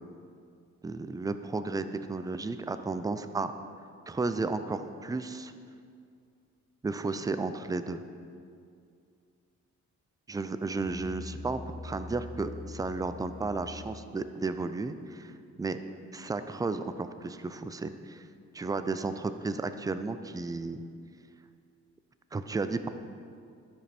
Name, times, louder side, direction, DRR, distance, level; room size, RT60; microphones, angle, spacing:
voice 1, 0.8-3.5 4.1-5.5 6.8-8.0 10.3-15.3 15.6-15.8 16.1-18.2 18.5-20.8 22.3-22.9, right 3 dB, 10° right, 10 dB, 0.4 m, -33 dB
Musical instrument, 10.6-14.1, left 3 dB, 10° left, 0.9 m, -44 dB
12.0 x 5.2 x 4.3 m, 2.3 s
cardioid pair, 90°, 30 cm